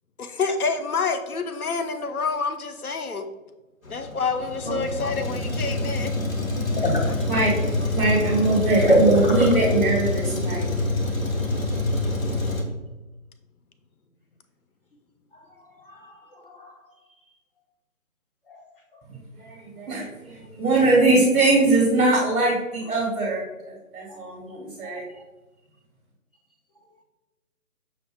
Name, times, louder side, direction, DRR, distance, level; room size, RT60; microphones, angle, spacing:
voice 1, 0.2-3.3 3.9-6.1 6.8-6.9, left 4 dB, 85° left, 7 dB, 0.6 m, -27 dB
Truck, 3.8-12.6, left 2 dB, 70° left, 1.0 m, -26 dB
voice 2, 6.8-7.3 8.9-9.5 15.3-15.4 15.8-16.7 18.5-18.6 24.1-24.2, equal, 40° left, 0 dB, 0.7 m, -24 dB
voice 3, 7.9-10.7 19.4-25.0, right 2 dB, ahead, -5 dB, 1.1 m, -22 dB
6.1 x 2.2 x 3.4 m, 1.1 s
figure-of-eight pair, 145°, 42 cm